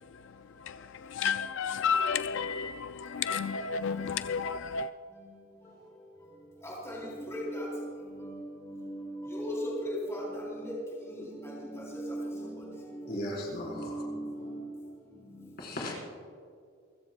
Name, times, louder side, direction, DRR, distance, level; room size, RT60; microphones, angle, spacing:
voice 1, 0.6-4.9, left 6 dB, 65° left, 0.3 m, -31 dB
voice 2, 6.6-7.9 8.2-10.7 11.0-14.7, equal, 15° left, 3.7 m, -38 dB
voice 3, 13.1-14.0 15.6-15.9, left 1 dB, 50° left, 4.4 m, -36 dB
29.0 x 15.0 x 2.3 m
head